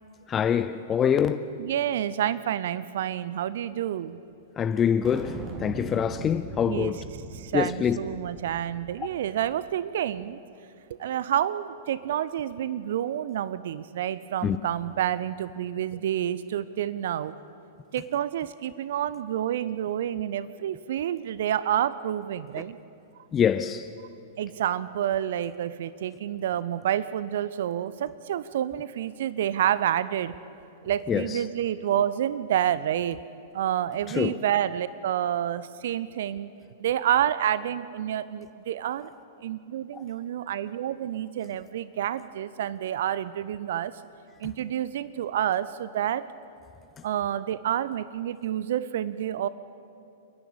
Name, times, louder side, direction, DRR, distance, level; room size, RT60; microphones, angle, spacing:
voice 1, 0.3-1.5 4.6-7.0 7.5-8.0 14.4-14.6 23.3-23.9 31.1-31.4 34.1-34.4 39.9-40.0, left 8 dB, 25° left, 0.6 m, -25 dB
voice 2, 1.6-4.2 6.7-7.0 7.3-10.4 11.0-17.4 17.9-22.8 24.4-30.3 30.8-33.2 33.5-36.5 36.8-39.1 39.4-43.9 44.4-46.3 47.0-49.5, right 11 dB, 60° right, 0.6 m, -29 dB
sound 1, 5.0-9.7, right 2 dB, 30° right, 3.1 m, -40 dB
28.0 x 10.5 x 8.7 m
figure-of-eight pair, 100°, 0 cm